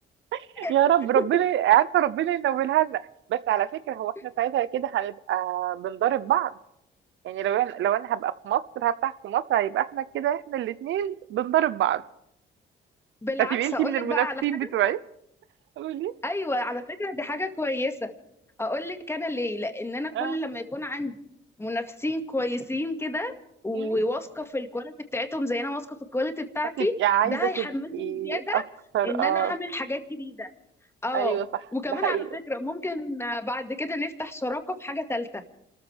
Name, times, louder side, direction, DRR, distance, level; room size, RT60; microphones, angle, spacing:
voice 1, 0.3-3.0 3.3-6.5 7.2-12.0 13.4-15.0 15.8-16.1 20.1-20.4 23.7-24.0 26.8-27.7 27.9-28.6 28.9-29.5 31.1-31.5 31.9-32.3, right 12 dB, 75° right, 16 dB, 0.6 m, -25 dB
voice 2, 13.2-14.4 16.2-18.1 18.6-21.2 21.6-23.3 23.6-26.9 27.3-28.6 29.0-30.5 31.0-31.4 31.7-35.4, left 1 dB, 10° left, 6 dB, 2.0 m, -30 dB
29.0 x 14.0 x 3.5 m, 0.82 s
cardioid pair, 90°, 20 cm